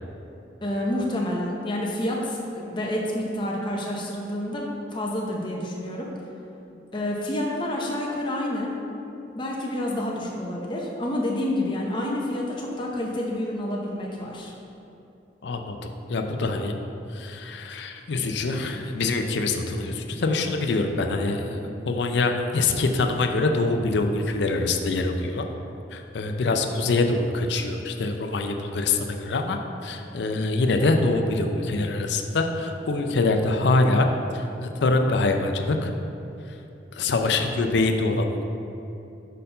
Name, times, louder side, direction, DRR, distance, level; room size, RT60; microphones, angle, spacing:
voice 1, 0.6-6.1 6.9-8.7 9.3-14.5, left 1 dB, 25° left, -2 dB, 0.6 m, -28 dB
voice 2, 15.4-16.7 17.1-25.5 25.9-34.1 34.3-35.9 36.9-38.4, left 3 dB, 75° left, 5 dB, 0.5 m, -24 dB
5.2 x 4.4 x 5.4 m, 2.9 s
head